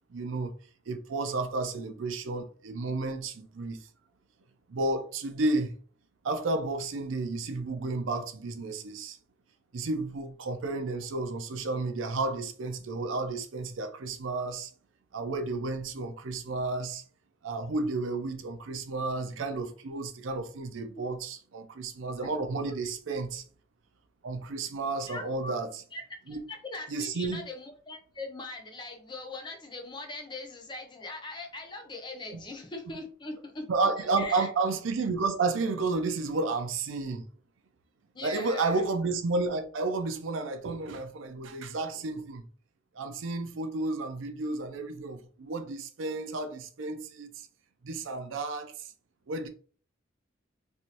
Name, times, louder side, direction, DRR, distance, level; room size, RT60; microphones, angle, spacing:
voice 1, 0.1-0.5 0.9-3.8 4.7-5.7 6.2-9.2 9.7-14.7 15.1-17.0 17.4-23.4 24.2-25.7 26.3-26.4 26.9-27.4 32.3-32.4 33.7-37.2 38.2-42.4 43.0-47.3 47.8-48.7 49.3-49.5, right 3 dB, 85° right, 0.5 m, -32 dB
voice 2, 25.1-25.5 25.9-33.7 34.2-34.5 38.1-38.8, left 2 dB, 25° left, 0.5 m, -41 dB
3.2 x 2.6 x 2.8 m
head